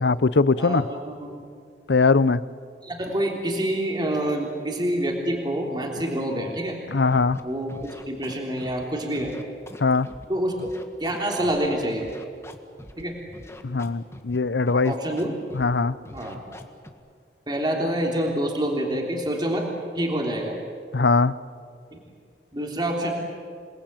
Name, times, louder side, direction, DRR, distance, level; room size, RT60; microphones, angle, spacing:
voice 1, 0.0-0.8 1.9-2.4 6.9-7.4 9.8-10.1 13.6-14.9 15.5-15.9 20.9-21.3, left 4 dB, 80° left, 17 dB, 0.7 m, -20 dB
voice 2, 0.6-1.5 2.8-6.8 7.4-9.3 10.3-10.6 11.0-12.1 13.0-13.2 14.7-15.4 16.1-16.4 17.5-19.7 20.0-20.6 21.9-22.0 22.5-23.1, right 1 dB, 25° right, 0 dB, 3.4 m, -27 dB
Scratching (performance technique), 7.1-7.4 7.7-8.8 9.1-10.2 10.6-11.7 12.0-13.0 13.3-14.4 14.7-15.2 15.5-15.8 16.0-16.9, left 1 dB, 15° left, 1.7 m, -43 dB
28.0 x 20.0 x 9.0 m, 2.2 s
head